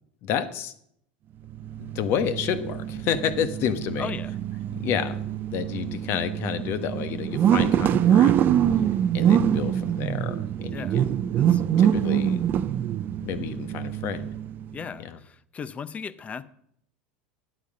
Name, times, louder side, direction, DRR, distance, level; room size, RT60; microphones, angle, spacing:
voice 1, 0.2-0.7 1.8-4.1 4.8-8.6 9.1-11.2 11.8-12.5 13.2-14.3 15.0-15.2, left 8 dB, 50° left, 11 dB, 1.1 m, -30 dB
sound 1, 1.5-14.8, right 10 dB, 40° right, 0.5 m, -24 dB
voice 2, 4.0-4.3 10.7-11.0 11.4-11.6 14.7-16.4, left 6 dB, 25° left, 16 dB, 0.6 m, -37 dB
10.0 x 8.2 x 5.2 m, 0.69 s
hypercardioid pair, 95°, 5 cm